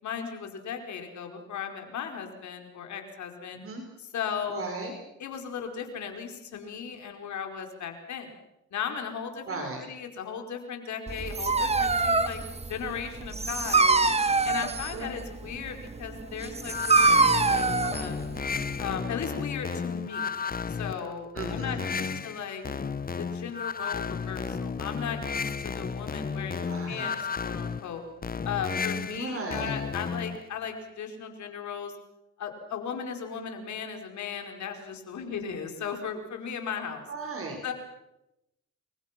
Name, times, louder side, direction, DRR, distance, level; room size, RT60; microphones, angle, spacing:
voice 1, 0.0-3.6 4.0-4.6 5.2-8.3 8.7-12.4 12.7-14.0 14.4-18.2 18.8-20.3 20.7-22.6 23.2-28.0 28.4-31.9 32.4-37.1 37.6-37.7, left 7 dB, 70° left, 4 dB, 5.0 m, -36 dB
voice 2, 3.5-3.8 4.5-4.9 9.5-9.9 14.9-15.1 21.3-22.2 26.7-27.1 29.1-29.8 37.1-37.6, right 3 dB, 45° right, 3 dB, 5.5 m, -36 dB
Dog, 11.1-18.9, right 3 dB, 20° right, 1.7 m, -25 dB
sound 1, 16.6-30.4, left 5 dB, 30° left, 1.1 m, -33 dB
29.0 x 23.5 x 6.1 m, 0.89 s
cardioid pair, 90°, 30 cm